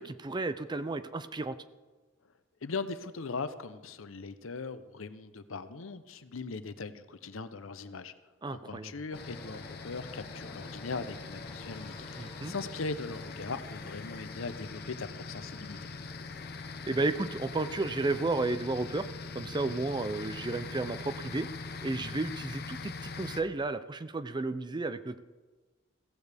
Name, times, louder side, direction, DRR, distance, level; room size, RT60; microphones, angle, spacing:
voice 1, 0.0-1.6 8.4-8.9 12.2-12.5 16.8-19.1 19.3-21.5 21.8-25.2, right 3 dB, 20° right, 12 dB, 0.5 m, -33 dB
voice 2, 2.6-8.1 8.5-15.9, left 4 dB, 85° left, 12 dB, 0.8 m, -40 dB
sound 1, 9.1-23.4, left 4 dB, 50° left, 0.9 m, -43 dB
sound 2, 9.1-21.9, left 2 dB, 25° left, 1.9 m, -51 dB
16.0 x 15.0 x 3.5 m, 1.3 s
head